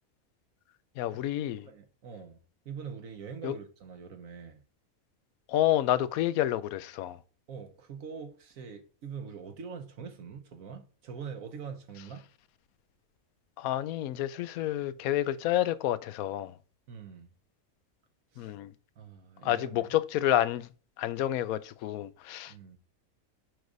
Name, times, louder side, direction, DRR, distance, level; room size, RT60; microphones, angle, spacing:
voice 1, 1.0-1.7 3.4-3.5 5.5-7.2 13.6-16.6 18.4-18.7 19.4-20.7 21.0-22.5, left 13 dB, 80° left, 1.0 m, -29 dB
voice 2, 1.6-2.4 2.6-4.6 7.5-12.3 16.9-17.3 18.3-18.5 19.0-20.0 22.5-22.8, right 6 dB, 75° right, 1.3 m, -43 dB
6.3 x 4.8 x 3.9 m
omnidirectional pair, 1.5 m